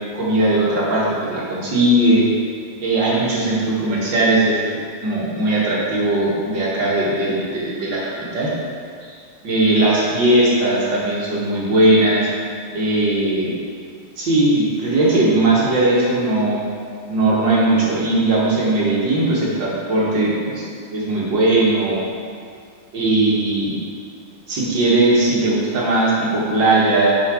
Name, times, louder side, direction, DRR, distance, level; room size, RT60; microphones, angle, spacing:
voice 1, 0.1-2.3 2.8-8.5 9.0-9.2 9.4-12.3 12.7-13.5 14.2-16.6 17.1-20.6 20.9-22.0 22.9-23.8 24.5-27.1, right 2 dB, 75° right, -6 dB, 2.5 m, -18 dB
7.3 x 5.0 x 6.4 m, 2.2 s
omnidirectional pair, 2.0 m